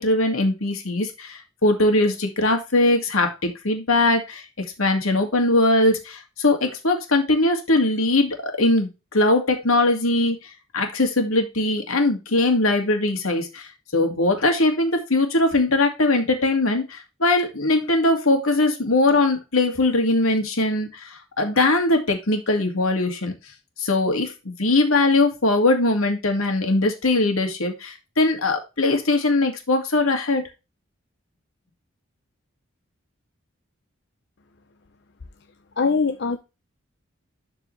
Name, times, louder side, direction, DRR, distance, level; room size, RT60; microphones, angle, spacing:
voice 1, 0.0-4.4 4.8-23.3 23.8-30.4, left 2 dB, 85° left, 2.3 m, -21 dB
voice 2, 35.8-36.4, left 4 dB, 55° left, 0.6 m, -21 dB
12.0 x 4.6 x 3.3 m
head